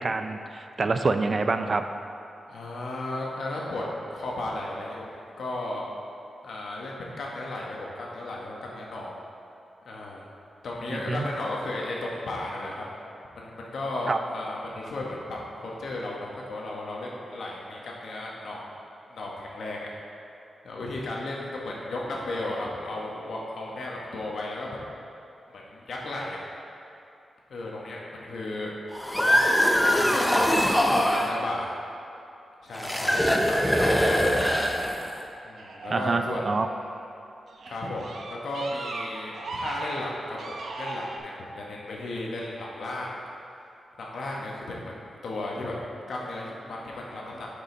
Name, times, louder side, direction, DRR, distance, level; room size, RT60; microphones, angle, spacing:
voice 1, 0.0-1.8 10.9-11.3 14.1-14.2 35.9-36.7, right 3 dB, 40° right, 8 dB, 0.4 m, -26 dB
voice 2, 2.5-3.8 4.1-5.8 6.4-9.1 9.8-10.3 10.6-12.8 13.4-18.6 19.1-19.9 20.6-24.7 25.5-26.4 27.5-28.7 29.9-31.7 32.6-34.5 35.4-36.5 37.7-38.0 38.3-43.1 44.0-45.8 46.1-47.5, left 2 dB, 70° left, -3 dB, 1.4 m, -34 dB
sound 1, 28.9-31.3 32.7-35.2, equal, 5° left, 0.6 m, -22 dB
sound 2, 35.6-36.9 37.5-41.2, right 2 dB, 70° right, 0.8 m, -37 dB
9.5 x 5.3 x 4.0 m, 2.7 s
wide cardioid pair, 115°, 0 cm